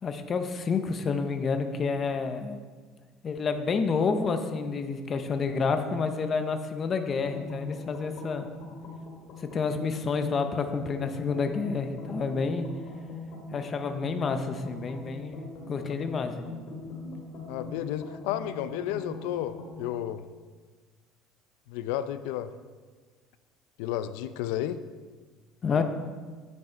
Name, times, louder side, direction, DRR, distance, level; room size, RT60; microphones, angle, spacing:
voice 1, 0.0-2.6 3.2-8.5 9.5-12.7 13.5-15.4 15.7-16.5 25.6-25.8, left 5 dB, 25° left, 7 dB, 0.6 m, -29 dB
sound 1, 7.2-19.9, left 3 dB, 45° left, 2.2 m, -42 dB
voice 2, 17.5-20.2 21.7-22.5 23.8-24.8 25.7-25.8, left 11 dB, 85° left, 12 dB, 0.4 m, -32 dB
9.5 x 8.0 x 4.4 m, 1.4 s
cardioid pair, 175°, 0 cm